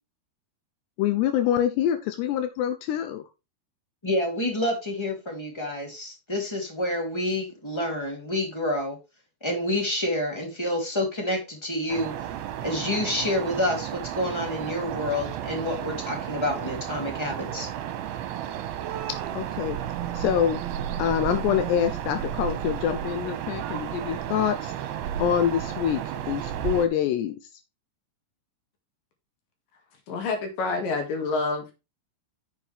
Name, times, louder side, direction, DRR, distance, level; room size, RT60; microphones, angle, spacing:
voice 1, 1.0-3.2 19.1-19.8 20.1-20.6 21.0-24.7 25.2-26.0 26.3-27.4, left 9 dB, 85° left, 8 dB, 2.9 m, -25 dB
voice 2, 4.0-9.0 9.4-12.1 12.6-17.7, left 1 dB, 10° left, 1 dB, 1.9 m, -28 dB
sound 1, 11.9-26.9, right 10 dB, 80° right, 2.9 m, -33 dB
voice 3, 30.1-31.7, left 3 dB, 60° left, 5 dB, 3.2 m, -28 dB
9.5 x 7.5 x 3.4 m, 0.26 s
omnidirectional pair, 4.8 m